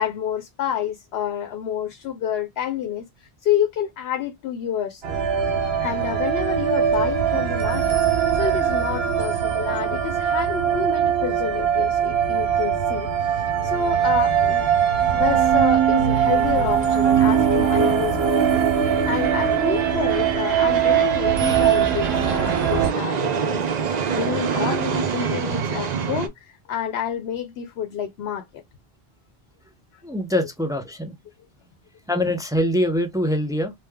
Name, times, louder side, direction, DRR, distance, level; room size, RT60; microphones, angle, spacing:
voice 1, 0.0-5.0 5.8-8.0 8.3-14.7 15.1-28.4, left 9 dB, 80° left, 0.8 m, -29 dB
sound 1, 5.0-22.9, right 8 dB, 70° right, 1.1 m, -21 dB
sound 2, 14.0-26.3, right 7 dB, 50° right, 0.6 m, -28 dB
sound 3, 15.9-21.7, right 2 dB, 20° left, 0.7 m, -28 dB
voice 2, 30.0-31.1 32.1-33.7, left 1 dB, 5° right, 0.3 m, -23 dB
3.2 x 2.0 x 3.4 m
omnidirectional pair, 1.1 m